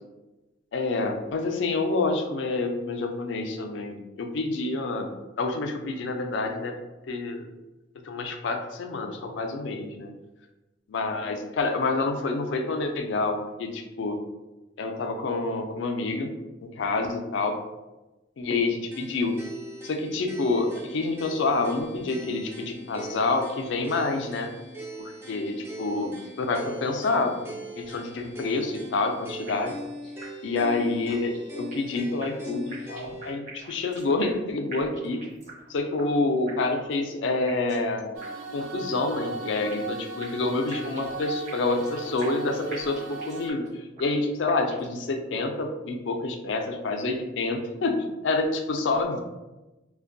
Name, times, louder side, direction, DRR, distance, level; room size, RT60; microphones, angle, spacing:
voice 1, 0.7-5.1 5.4-7.5 8.0-10.1 10.9-14.2 14.8-16.3 16.6-17.6 18.4-19.3 19.8-24.5 25.0-29.8 30.4-35.2 35.7-38.1 38.5-43.6 44.0-49.2, left 3 dB, 70° left, 5 dB, 0.3 m, -28 dB
sound 1, 18.9-33.3, right 1 dB, 10° right, 0.3 m, -41 dB
sound 2, 29.5-29.9 30.2-30.3 30.6-30.7 31.1-31.9 32.2-34.4 34.7-35.7 36.0-36.1 36.5-37.0 37.5-37.9 38.2-38.3 38.6-38.7 39.1-39.9 40.2-42.4 42.7-43.7 44.0-44.1 44.5-45.0, right 3 dB, 40° right, 0.7 m, -44 dB
sound 3, 38.1-43.5, right 3 dB, 85° right, 0.4 m, -37 dB
2.5 x 2.1 x 2.5 m, 1.1 s
head